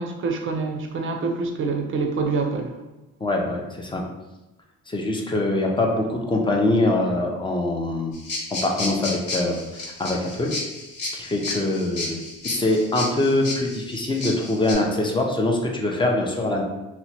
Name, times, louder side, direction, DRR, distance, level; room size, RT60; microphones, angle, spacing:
voice 1, 0.0-2.7, right 4 dB, 40° right, 4 dB, 0.4 m, -26 dB
voice 2, 3.2-4.0 4.9-8.1 8.5-10.5 11.1-16.6, left 2 dB, 15° left, 0 dB, 0.4 m, -23 dB
sound 1, 8.1-14.7, left 2 dB, 65° left, 1.1 m, -32 dB
2.9 x 2.1 x 2.7 m, 1.0 s
cardioid pair, 115°, 31 cm